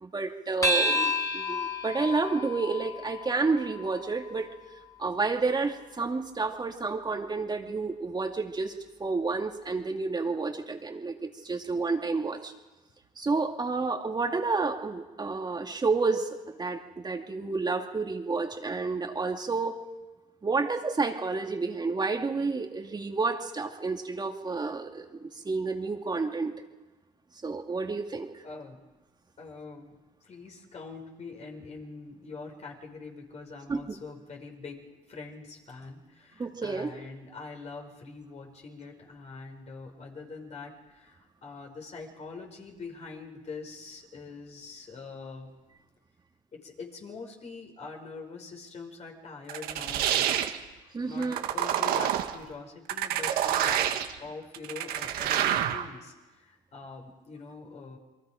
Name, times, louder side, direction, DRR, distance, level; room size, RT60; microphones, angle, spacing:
voice 1, 0.0-4.5 5.0-8.7 9.0-12.5 13.2-19.8 20.4-26.5 27.4-28.3 33.7-33.8 36.4-36.9 50.9-51.5, right 4 dB, 25° right, 2 dB, 2.4 m, -30 dB
sound 1, 0.6-5.4, left 1 dB, 20° left, 4.7 m, -31 dB
voice 2, 28.4-28.8 29.4-34.8 35.1-45.5 46.5-50.5 51.0-53.9 54.2-58.0, left 4 dB, 45° left, 2 dB, 5.7 m, -44 dB
sound 2, 49.5-50.6 51.2-52.3 52.9-54.1 54.5-55.8, right 11 dB, 75° right, 1.6 m, -27 dB
28.5 x 22.5 x 5.2 m, 1.2 s
supercardioid pair, 75°, 15 cm